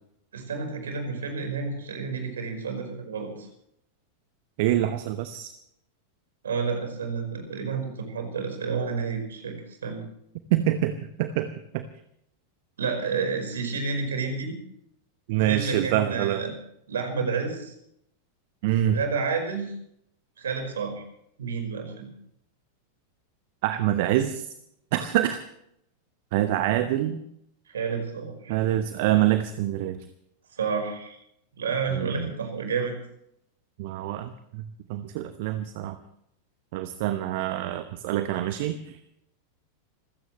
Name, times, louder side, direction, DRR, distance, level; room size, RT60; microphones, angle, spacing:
voice 1, 0.3-3.5 6.4-9.6 9.8-10.0 12.8-14.6 15.3-16.5 16.9-17.7 18.9-19.7 20.4-20.9 21.4-22.1 27.7-28.6 30.5-31.2 31.6-32.9, right 5 dB, 65° right, 4 dB, 4.8 m, -30 dB
voice 2, 4.6-5.5 10.5-11.8 15.3-16.4 18.6-19.0 23.6-24.5 24.9-25.4 26.3-27.2 28.5-30.0 31.9-32.3 33.8-34.6 34.9-36.0 36.7-39.0, right 13 dB, 50° right, 11 dB, 1.0 m, -26 dB
27.0 x 15.5 x 3.2 m, 0.74 s
figure-of-eight pair, 90°, 0 cm